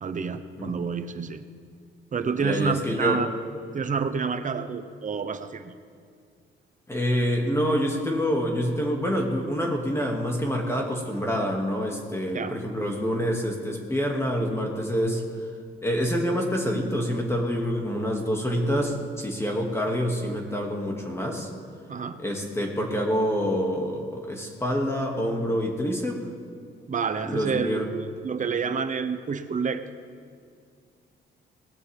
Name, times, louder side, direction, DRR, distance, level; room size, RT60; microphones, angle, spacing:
voice 1, 0.0-1.4 2.1-3.3 3.7-5.7 12.3-12.6 21.9-22.2 26.9-29.8, right 5 dB, 40° right, 10 dB, 1.0 m, -28 dB
voice 2, 2.4-3.2 6.9-15.2 15.8-21.5 22.2-26.3 27.3-27.9, equal, 15° left, 0 dB, 2.3 m, -27 dB
20.5 x 15.5 x 3.6 m, 2.2 s
cardioid pair, 90°, 20 cm